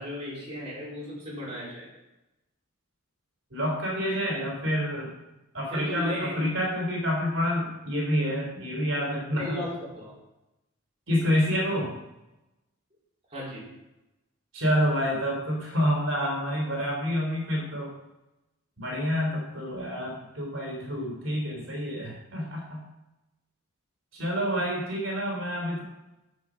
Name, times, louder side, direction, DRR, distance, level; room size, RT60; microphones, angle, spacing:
voice 1, 0.0-1.9 5.7-6.5 9.3-10.1 13.3-13.6 21.2-21.3, left 1 dB, 30° right, -6 dB, 4.0 m, -35 dB
voice 2, 3.5-5.1 5.5-9.6 11.1-11.9 14.5-17.9 18.8-22.8 24.1-25.8, equal, 70° right, -1 dB, 3.4 m, -28 dB
9.5 x 7.3 x 6.2 m, 0.97 s
head